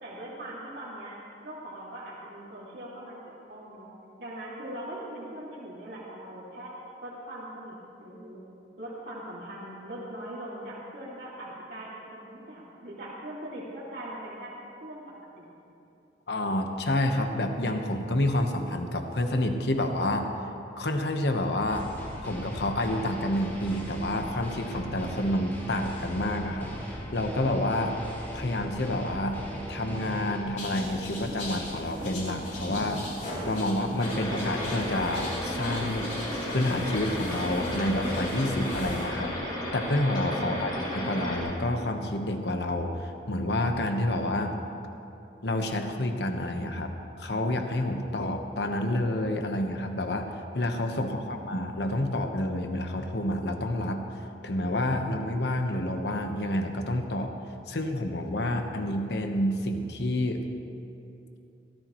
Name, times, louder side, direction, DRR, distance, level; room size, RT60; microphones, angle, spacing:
voice 1, 0.0-3.9 4.2-6.7 7.0-8.4 8.8-14.5 14.8-15.0 15.4-15.5 51.1-51.6, right 1 dB, 65° right, -8 dB, 2.5 m, -41 dB
voice 2, 16.3-20.3 20.8-21.9 22.2-26.7 27.1-28.0 28.3-29.4 29.7-33.0 33.4-36.2 36.5-39.3 39.7-44.6 45.4-54.1 54.4-57.3 57.7-60.4, left 1 dB, 70° left, 5 dB, 1.2 m, -29 dB
sound 1, 21.7-30.4, equal, 10° left, 2.8 m, -39 dB
sound 2, 30.6-39.1, left 1 dB, 40° left, 3.7 m, -38 dB
sound 3, 34.0-41.4, left 1 dB, 25° left, 4.1 m, -33 dB
22.5 x 15.0 x 3.1 m, 2.8 s
head